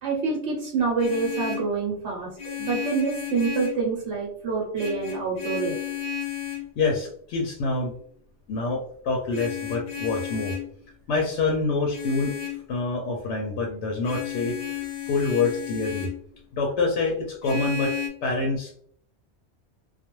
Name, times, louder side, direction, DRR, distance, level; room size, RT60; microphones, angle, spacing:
voice 1, 0.0-5.8, right 4 dB, 85° right, -2 dB, 1.0 m, -27 dB
Vehicle horn car horn honking, 0.8-1.7 2.4-3.9 4.7-6.7 9.3-10.7 11.9-12.6 14.0-16.2 17.4-18.1, left 8 dB, 50° left, 0.6 m, -33 dB
voice 2, 6.8-7.9 8.5-10.5 11.1-12.3 12.7-14.5 15.1-16.1 16.5-17.9 18.2-18.7, left 3 dB, 90° left, 0 dB, 0.9 m, -26 dB
2.3 x 2.2 x 2.9 m, 0.63 s
omnidirectional pair, 1.2 m